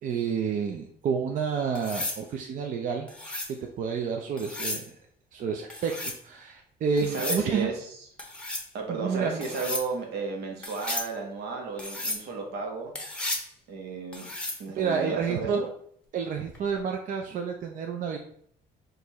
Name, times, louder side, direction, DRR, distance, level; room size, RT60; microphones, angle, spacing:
voice 1, 0.0-3.1 3.8-4.8 5.3-7.7 8.9-9.4 14.8-15.7 16.1-18.2, right 6 dB, 50° right, 3 dB, 0.5 m, -29 dB
sound 1, 1.8-2.2 3.1-3.5 4.4-4.9 5.7-6.2 7.0-7.5 8.2-8.7 9.4-9.9 10.6-11.1 11.8-12.2 13.0-13.5 14.1-14.6 16.6-16.8, left 1 dB, 5° left, 1.0 m, -34 dB
voice 2, 7.0-8.0 8.7-13.0 13.7-14.3 14.6-15.6, right 4 dB, 75° right, 1 dB, 1.1 m, -33 dB
4.5 x 2.6 x 4.0 m, 0.64 s
cardioid pair, 110°, 17 cm